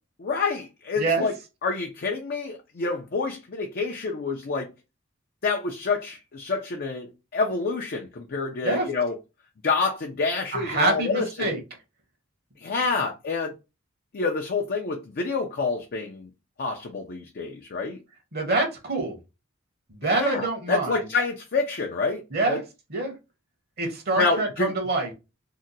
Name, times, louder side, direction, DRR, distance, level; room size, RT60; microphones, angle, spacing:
voice 1, 0.2-1.3 1.6-4.7 5.4-9.1 9.6-11.5 12.6-13.5 14.1-16.3 16.6-18.0 20.0-22.6 24.2-24.7, left 4 dB, 50° left, 0.5 m, -28 dB
voice 2, 10.5-11.6 18.3-19.2 20.0-21.0 22.3-22.6 22.9-23.1 23.8-25.1, right 2 dB, 50° right, 0.9 m, -25 dB
2.8 x 2.2 x 3.8 m
head